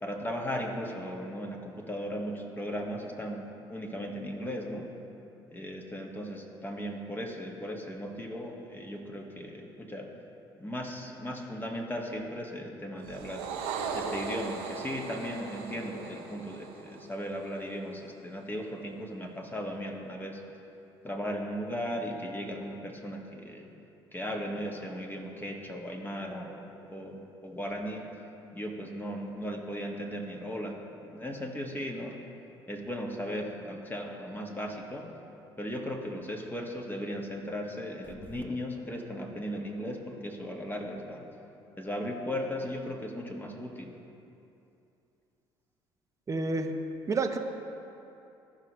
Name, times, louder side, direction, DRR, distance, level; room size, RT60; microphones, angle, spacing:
voice 1, 0.0-4.9 5.5-10.1 10.6-13.5 13.9-20.4 21.0-23.7 24.1-28.1 28.5-30.8 31.1-32.2 32.7-35.0 35.6-41.2 41.8-43.9, equal, 15° left, 0 dB, 1.6 m, -37 dB
sound 1, 13.0-17.6, right 5 dB, 80° right, 0.9 m, -38 dB
voice 2, 46.3-46.8 47.1-47.4, right 3 dB, 25° right, 5 dB, 0.8 m, -29 dB
15.0 x 5.9 x 3.1 m, 2.8 s
hypercardioid pair, 60°, 12 cm